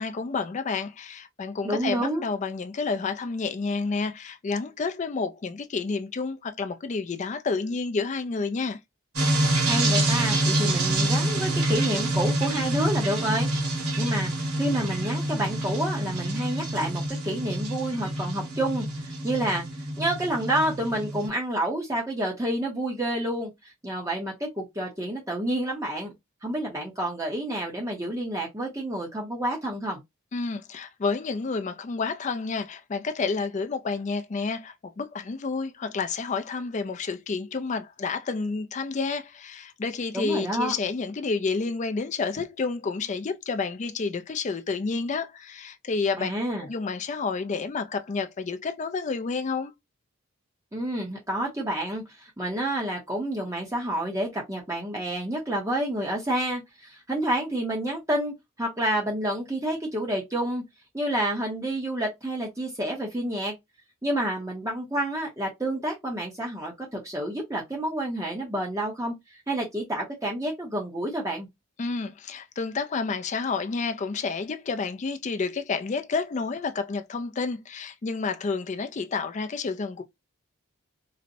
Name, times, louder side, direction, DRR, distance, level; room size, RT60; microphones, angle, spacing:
voice 1, 0.0-8.8 30.3-46.3 46.6-49.7 71.8-80.0, left 4 dB, 35° left, 0.3 m, -30 dB
voice 2, 1.6-2.3 9.6-19.6 20.0-26.1 26.4-30.0 40.1-40.7 46.2-46.7 50.7-60.6 60.9-63.5 64.0-69.1 69.5-71.5, right 1 dB, 15° right, 0.7 m, -29 dB
sound 1, 9.2-21.3, right 1 dB, 85° right, 1.6 m, -27 dB
4.0 x 2.1 x 2.6 m
head